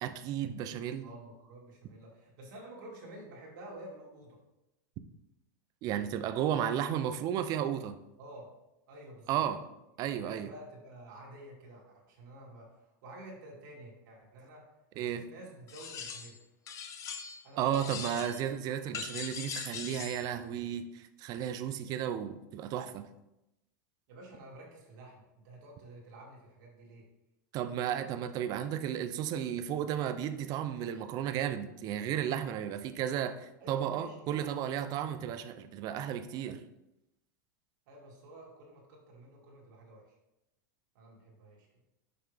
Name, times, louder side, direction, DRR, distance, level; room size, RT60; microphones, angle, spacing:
voice 1, 0.0-1.1 5.8-8.0 9.3-9.6 10.0-10.5 15.0-15.3 17.6-23.0 27.5-36.6, right 10 dB, 35° right, 11 dB, 0.5 m, -33 dB
voice 2, 1.0-4.4 8.2-8.5 8.9-9.4 10.2-14.7 15.0-16.4 17.4-18.3 24.1-27.1 33.6-34.5 37.9-40.1 40.9-41.7, right 1 dB, 65° right, -2 dB, 2.2 m, -50 dB
sound 1, 15.7-16.4 16.7-17.5 17.7-18.4 18.9-20.3, left 7 dB, 30° left, 0.6 m, -41 dB
5.7 x 5.6 x 3.4 m, 0.92 s
supercardioid pair, 140°, 11 cm